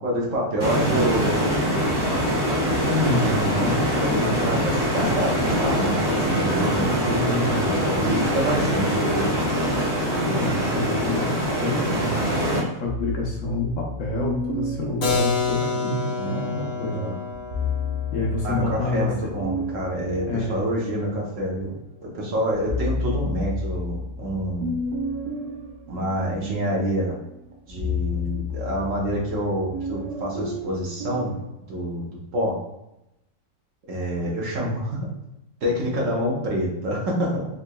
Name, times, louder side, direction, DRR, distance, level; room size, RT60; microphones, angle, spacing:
voice 1, 0.0-1.5 3.3-3.7 4.0-9.4 15.7-15.9 16.1-17.2 18.4-21.7 22.0-24.7 25.9-27.1 27.7-31.3 31.7-32.6 33.9-35.0 35.6-37.5, equal, 60° right, -3 dB, 1.2 m, -27 dB
sound 1, 0.6-12.6, equal, 40° right, 1.7 m, -23 dB
voice 2, 0.7-1.3 2.9-4.8 6.8-7.8 10.2-17.2 18.1-19.1 20.3-20.6, left 2 dB, 65° left, -2 dB, 0.9 m, -28 dB
sound 2, 12.8-16.3 17.3-21.7 22.2-31.5, left 3 dB, 85° right, 1.2 m, -32 dB
Keyboard (musical), 15.0-20.6, left 4 dB, 85° left, 1.4 m, -29 dB
3.7 x 2.9 x 2.2 m, 0.88 s
omnidirectional pair, 1.6 m